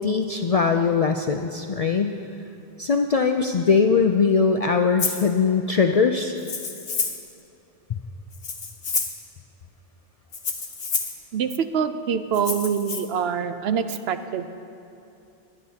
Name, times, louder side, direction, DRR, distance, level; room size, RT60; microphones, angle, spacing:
voice 1, 0.0-2.1 2.8-6.3, left 5 dB, 55° left, 5 dB, 0.4 m, -21 dB
Rattle (instrument), 5.0-5.3 6.4-7.3 8.3-9.2 10.3-11.2 12.3-13.0, left 5 dB, 75° left, 1.2 m, -28 dB
voice 2, 11.3-14.5, right 7 dB, 75° right, 10 dB, 0.8 m, -25 dB
21.0 x 10.5 x 2.8 m, 2.7 s
omnidirectional pair, 1.1 m